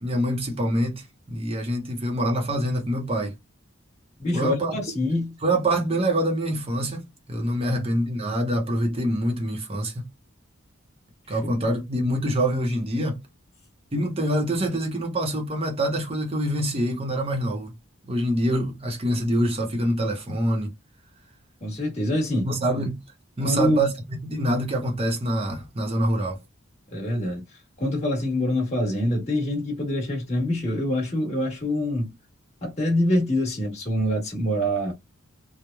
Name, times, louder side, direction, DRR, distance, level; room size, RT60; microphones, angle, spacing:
voice 1, 0.0-3.3 4.3-4.8 5.4-10.1 11.3-13.2 13.9-17.7 18.1-20.7 22.4-23.0 23.4-26.4, right 1 dB, 25° right, 0.7 m, -25 dB
voice 2, 4.2-5.3 7.7-7.8 11.4-11.5 21.6-22.5 23.4-23.8 26.9-27.4 27.8-32.1 32.6-34.9, left 1 dB, 30° left, 1.2 m, -25 dB
3.0 x 2.0 x 2.2 m
head